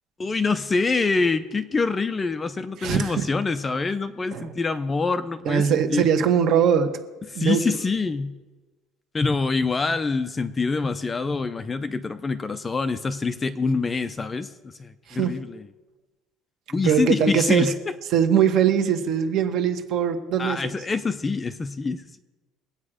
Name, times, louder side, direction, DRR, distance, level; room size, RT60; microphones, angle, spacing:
voice 1, 0.2-6.0 7.3-8.3 9.1-15.7 16.7-17.7 20.4-22.2, left 4 dB, 15° left, 10 dB, 0.5 m, -25 dB
voice 2, 2.8-3.3 4.3-4.5 5.4-7.0 7.3-7.6 15.1-15.4 16.8-17.7 18.1-20.7, right 8 dB, 45° right, 7 dB, 1.2 m, -21 dB
22.0 x 8.8 x 5.0 m, 1.2 s
cardioid pair, 165°, 0 cm